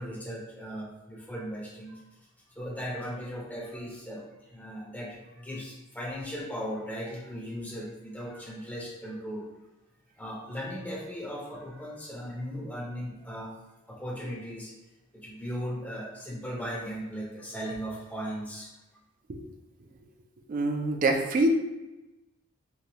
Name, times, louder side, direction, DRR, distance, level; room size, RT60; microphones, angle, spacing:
voice 1, 0.0-2.0 2.5-9.5 10.2-13.6 13.9-14.7 15.1-18.7, equal, 10° left, -3 dB, 0.5 m, -37 dB
voice 2, 20.5-21.5, right 2 dB, 40° right, 3 dB, 0.3 m, -25 dB
3.0 x 2.2 x 2.8 m, 1.0 s
head